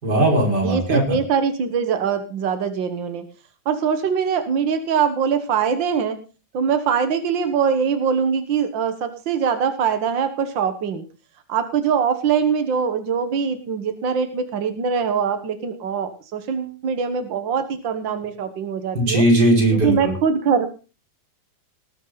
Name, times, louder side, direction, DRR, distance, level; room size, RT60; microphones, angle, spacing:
voice 1, 0.0-1.1 18.9-20.1, right 1 dB, 25° right, 0 dB, 5.4 m, -18 dB
voice 2, 0.6-3.2 3.6-6.2 6.5-11.0 11.5-19.2 19.7-20.7, right 6 dB, 80° right, 9 dB, 1.0 m, -22 dB
19.0 x 9.7 x 4.0 m, 0.33 s
omnidirectional pair, 4.3 m